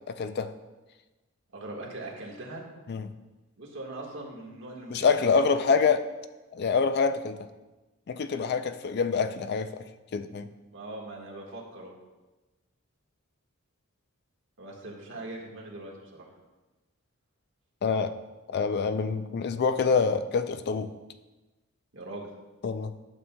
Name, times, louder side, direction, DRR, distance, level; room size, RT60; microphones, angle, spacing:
voice 1, 0.1-0.5 2.9-3.0 4.9-6.1 6.5-7.5 8.1-9.8 10.1-10.5 17.8-18.1 18.5-20.9 22.6-22.9, left 5 dB, 50° left, 10 dB, 0.4 m, -26 dB
voice 2, 1.5-2.6 3.6-5.4 10.7-11.9 14.6-16.3 21.9-22.3, right 2 dB, 60° right, -1 dB, 1.5 m, -41 dB
11.0 x 7.1 x 2.2 m, 1.1 s
head